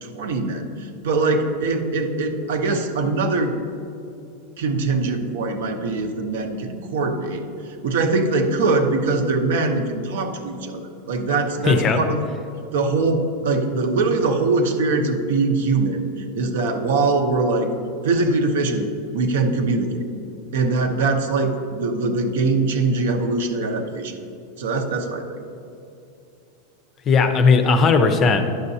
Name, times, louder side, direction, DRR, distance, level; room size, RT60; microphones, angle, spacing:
voice 1, 0.0-3.5 4.6-12.2 12.7-17.7 18.0-20.1 20.5-24.2 24.6-25.4, right 3 dB, 80° right, 5 dB, 0.8 m, -22 dB
voice 2, 11.7-12.0 27.1-28.5, left 4 dB, 25° left, 7 dB, 0.5 m, -17 dB
10.0 x 6.5 x 2.7 m, 2.7 s
supercardioid pair, 165°, 0 cm